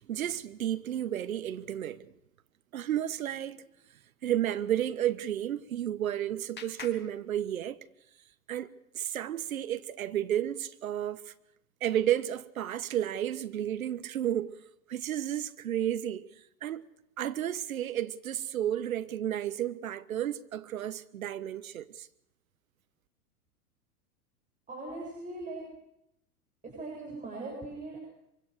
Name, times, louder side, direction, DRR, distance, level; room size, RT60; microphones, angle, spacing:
voice 1, 0.0-2.1 2.7-3.6 4.2-7.8 8.5-8.7 8.9-11.3 11.8-14.5 14.9-16.3 16.6-16.9 17.2-22.1, right 11 dB, 65° right, 1.4 m, -32 dB
Clapping, 5.4-8.1, left 6 dB, 25° left, 2.7 m, -51 dB
voice 2, 24.7-25.6 26.6-28.0, right 2 dB, 15° right, 7.8 m, -40 dB
24.5 x 24.0 x 6.5 m
figure-of-eight pair, 100°, 44 cm